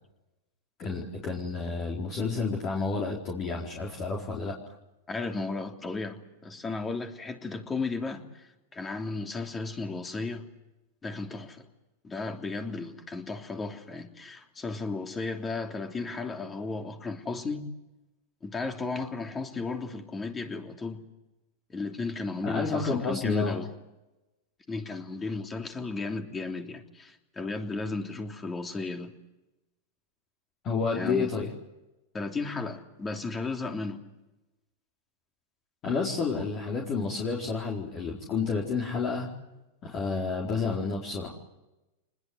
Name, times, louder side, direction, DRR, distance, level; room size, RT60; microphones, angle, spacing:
voice 1, 0.8-4.6 22.4-23.6 30.6-31.5 35.8-39.3 39.8-41.3, left 4 dB, 35° left, -2 dB, 4.3 m, -30 dB
voice 2, 5.1-10.5 11.0-11.7 12.0-17.7 18.4-21.0 21.7-23.7 24.7-29.1 30.9-31.3 32.1-34.0 36.3-36.4, left 3 dB, 15° left, 5 dB, 3.2 m, -34 dB
27.0 x 20.5 x 8.0 m, 1.0 s
hypercardioid pair, 125°, 0 cm